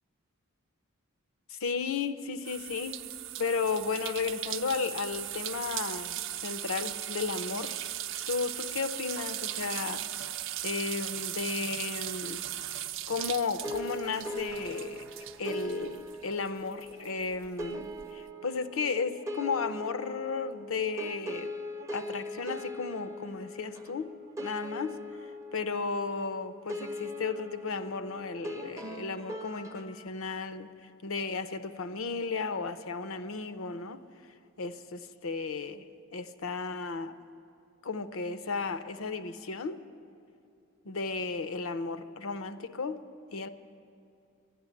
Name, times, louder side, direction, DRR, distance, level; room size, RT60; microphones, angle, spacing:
voice 1, 1.5-3.0 3.4-7.8 8.3-10.1 10.6-12.4 13.1-15.1 15.4-21.5 21.9-24.1 24.4-25.0 25.5-30.7 31.0-34.0 34.6-35.8 36.1-37.1 37.8-39.8 40.8-43.0 43.3-43.5, left 4 dB, 75° left, 12 dB, 0.6 m, -34 dB
sound 1, 2.4-16.5 16.8-18.0, right 12 dB, 60° right, 0.5 m, -38 dB
sound 2, 13.6-30.1, left 1 dB, 15° right, 0.5 m, -40 dB
12.5 x 10.5 x 9.7 m, 2.7 s
head